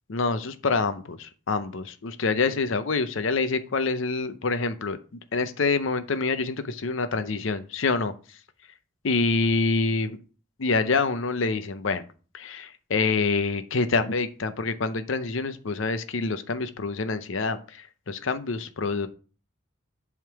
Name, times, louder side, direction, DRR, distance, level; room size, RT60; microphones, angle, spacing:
voice 1, 0.1-8.1 9.0-10.2 10.6-12.1 12.3-19.1, left 4 dB, 70° left, 11 dB, 0.6 m, -26 dB
7.7 x 3.6 x 4.6 m, 0.37 s
head